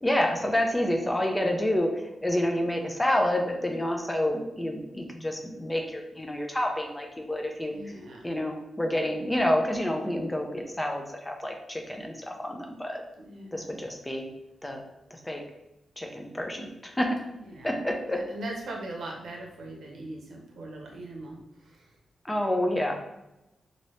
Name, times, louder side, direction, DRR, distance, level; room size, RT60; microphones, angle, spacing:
voice 1, 0.0-7.7 8.2-13.0 13.5-14.3 14.6-14.8 15.1-15.4 16.0-17.2 17.6-18.2 22.2-22.9, left 1 dB, 10° left, 2 dB, 0.4 m, -28 dB
voice 2, 7.7-8.3 13.2-13.8 17.4-17.8 18.1-21.4 21.7-21.8, right 1 dB, 75° right, 0 dB, 0.7 m, -40 dB
2.8 x 2.7 x 3.1 m, 0.92 s
wide cardioid pair, 155°, 0 cm